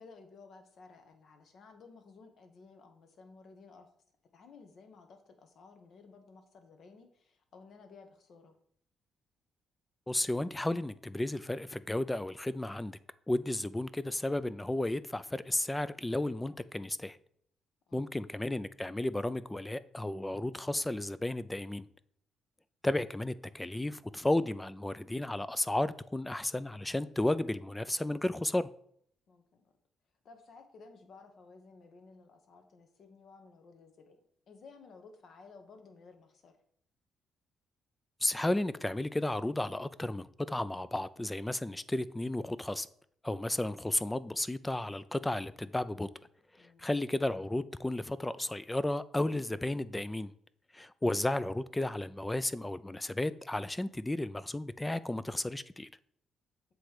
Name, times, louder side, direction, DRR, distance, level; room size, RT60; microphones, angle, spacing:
voice 1, 0.0-3.9 4.3-8.5 17.9-18.2 29.3-29.7 30.2-34.2 34.5-36.5 46.6-46.9, left 4 dB, 60° left, 1.1 m, -55 dB
voice 2, 10.1-13.0 13.3-17.2 17.9-21.9 22.8-28.7 38.2-42.9 43.2-46.1 46.8-50.3 50.7-55.9, left 1 dB, 10° left, 0.3 m, -33 dB
7.6 x 3.1 x 4.9 m
cardioid pair, 90°, 0 cm